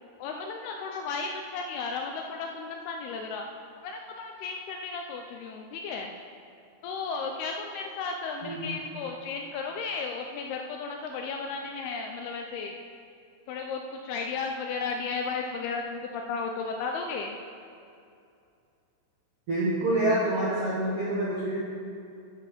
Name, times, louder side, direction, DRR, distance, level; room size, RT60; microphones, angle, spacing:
voice 1, 0.2-3.4 3.8-6.1 6.8-12.8 13.5-17.4, left 4 dB, 80° left, 3 dB, 2.3 m, -34 dB
voice 2, 19.5-21.6, right 1 dB, 65° right, -8 dB, 1.5 m, -27 dB
12.0 x 6.6 x 5.1 m, 2.5 s
omnidirectional pair, 5.0 m